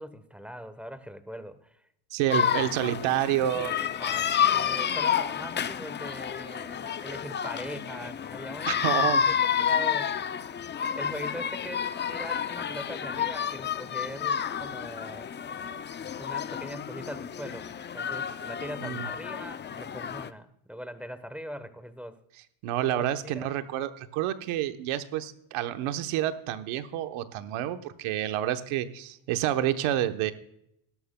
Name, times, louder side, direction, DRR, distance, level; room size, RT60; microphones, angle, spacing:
voice 1, 0.0-1.8 2.4-2.7 3.6-9.2 9.6-10.5 10.9-15.3 16.2-17.7 17.9-22.2 22.9-23.5, equal, 5° right, 13 dB, 1.0 m, -41 dB
voice 2, 2.1-3.7 8.7-9.3 18.8-19.1 22.6-30.3, right 12 dB, 80° right, 9 dB, 1.1 m, -29 dB
sound 1, 2.3-20.3, left 8 dB, 25° left, 0.4 m, -30 dB
17.0 x 13.0 x 2.2 m, 0.75 s
cardioid pair, 100°, 49 cm